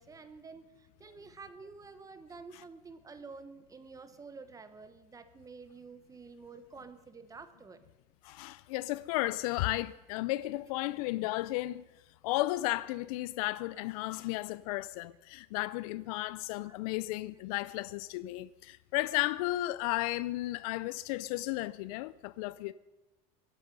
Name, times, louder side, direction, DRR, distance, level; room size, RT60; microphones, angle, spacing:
voice 1, 0.0-7.8 16.6-16.8 20.0-20.1, right 4 dB, 20° right, 1.2 m, -50 dB
voice 2, 8.2-11.9 12.2-22.7, left 18 dB, 85° left, 0.5 m, -34 dB
22.5 x 9.1 x 5.4 m
supercardioid pair, 130°, 18 cm